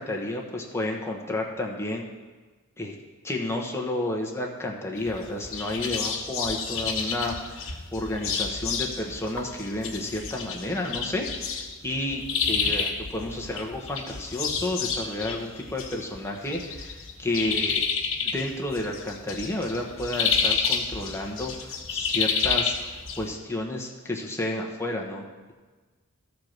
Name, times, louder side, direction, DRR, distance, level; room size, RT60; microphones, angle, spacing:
voice 1, 0.0-2.0 2.8-2.9 3.2-17.8 18.2-22.8 23.2-25.5, left 1 dB, 10° left, 0 dB, 1.1 m, -31 dB
sound 1, 5.0-23.3, left 5 dB, 65° left, 1.2 m, -30 dB
13.5 x 4.6 x 6.6 m, 1.3 s
head